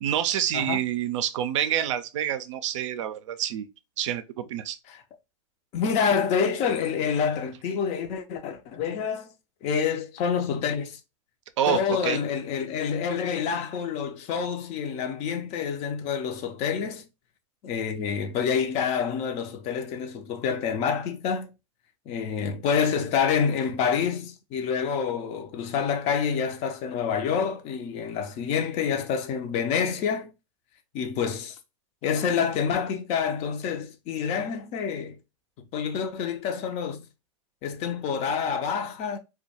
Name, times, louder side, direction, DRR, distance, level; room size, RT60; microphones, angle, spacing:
voice 1, 0.0-3.7 4.0-4.8 11.6-12.2, right 10 dB, 70° right, 0.4 m, -27 dB
voice 2, 5.7-9.3 9.6-11.0 11.7-17.1 17.6-21.5 22.1-30.3 30.9-31.6 32.0-35.2 35.7-37.0 37.6-39.2, left 6 dB, 40° left, 0.5 m, -27 dB
2.2 x 2.1 x 2.7 m
hypercardioid pair, 105°, 16 cm